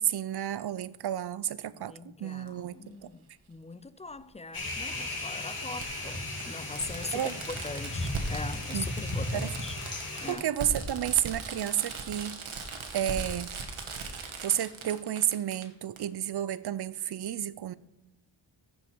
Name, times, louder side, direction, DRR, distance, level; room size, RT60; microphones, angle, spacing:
voice 1, 0.0-1.9 2.2-2.8 7.1-7.3 8.7-8.9 9.3-9.5 10.3-12.4 12.9-13.5 14.4-17.7, right 11 dB, 55° right, 0.5 m, -31 dB
voice 2, 1.8-9.8 10.2-10.4, left 3 dB, 15° left, 0.3 m, -41 dB
Fireworks, 2.5-2.6 4.1-4.2 5.8-5.9 6.4-6.5 6.8-15.6 16.0-16.1, right 4 dB, 75° right, 1.5 m, -39 dB
sound 1, 4.5-10.3, left 2 dB, 45° left, 2.3 m, -35 dB
15.0 x 5.3 x 4.5 m
wide cardioid pair, 85°, 49 cm